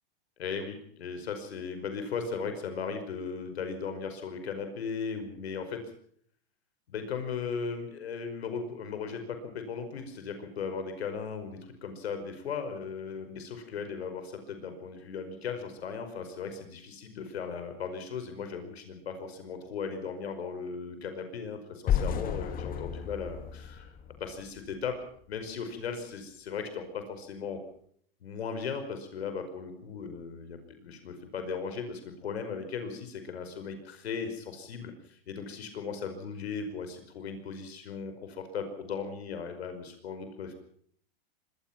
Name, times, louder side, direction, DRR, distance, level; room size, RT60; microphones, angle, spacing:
voice 1, 0.4-5.8 6.9-23.9 24.2-25.0 25.3-27.6 28.2-40.5, left 5 dB, 80° left, 8 dB, 5.3 m, -37 dB
sound 1, 21.9-24.9, left 8 dB, 30° left, 2.2 m, -32 dB
25.0 x 20.0 x 6.0 m, 0.62 s
hypercardioid pair, 125°, 31 cm